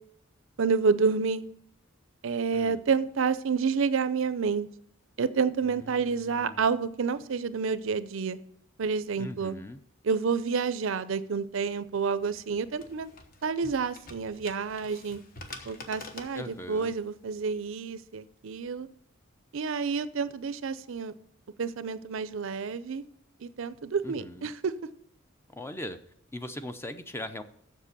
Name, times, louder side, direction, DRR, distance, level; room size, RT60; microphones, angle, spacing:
voice 1, 0.6-1.4 2.2-4.7 5.2-8.4 8.8-9.6 10.0-13.1 13.4-15.2 15.7-18.9 19.5-21.1 21.6-23.0 23.4-24.7, right 5 dB, 65° right, 15 dB, 0.5 m, -29 dB
voice 2, 5.6-6.6 9.2-9.8 16.3-16.9 24.0-24.5 25.5-26.0 26.3-27.4, left 1 dB, 10° left, 10 dB, 0.5 m, -40 dB
sound 1, 12.2-17.6, left 3 dB, 45° left, 1.1 m, -47 dB
7.5 x 6.6 x 6.8 m, 0.68 s
head